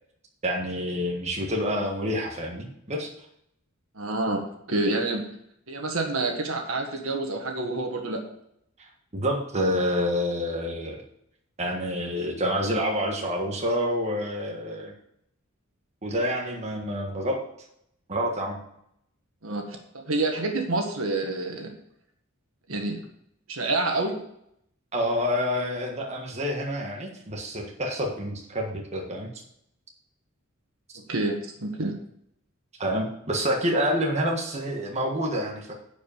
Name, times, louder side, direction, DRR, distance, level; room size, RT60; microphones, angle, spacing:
voice 1, 0.4-3.1 9.1-11.0 11.6-14.9 16.0-17.4 18.1-18.6 24.9-29.3 32.8-35.7, equal, 30° right, 1 dB, 1.5 m, -28 dB
voice 2, 3.9-4.4 4.7-5.2 5.7-8.2 19.4-19.6 19.9-21.7 22.7-23.0 23.5-24.2 30.9-32.0, right 2 dB, 75° right, 3 dB, 1.8 m, -28 dB
10.5 x 5.2 x 7.0 m, 0.74 s
head